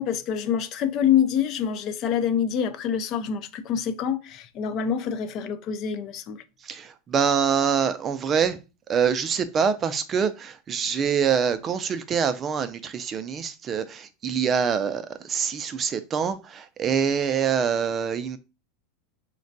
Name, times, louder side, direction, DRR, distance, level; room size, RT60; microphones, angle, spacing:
voice 1, 0.0-6.4, left 8 dB, 45° left, 0.4 m, -26 dB
voice 2, 6.6-8.6 8.9-18.4, right 7 dB, 30° right, 0.4 m, -25 dB
3.8 x 2.2 x 2.6 m
supercardioid pair, 120°, 0 cm